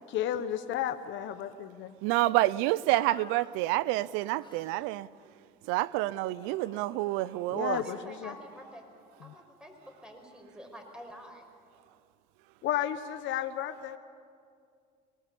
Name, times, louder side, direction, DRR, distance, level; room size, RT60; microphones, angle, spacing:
voice 1, 0.1-1.9 7.5-8.4 9.2-9.3 12.6-14.0, left 11 dB, 70° left, 1.1 m, -33 dB
voice 2, 2.0-5.1 5.7-7.8, right 17 dB, 90° right, 0.6 m, -28 dB
sound 1, 2.9-3.5 4.4-4.9 6.4-8.7, left 4 dB, 20° left, 1.7 m, -53 dB
voice 3, 7.7-8.8 9.2-9.7 10.0-11.4, equal, 5° right, 5.3 m, -47 dB
23.5 x 19.5 x 8.4 m
supercardioid pair, 95°, 20 cm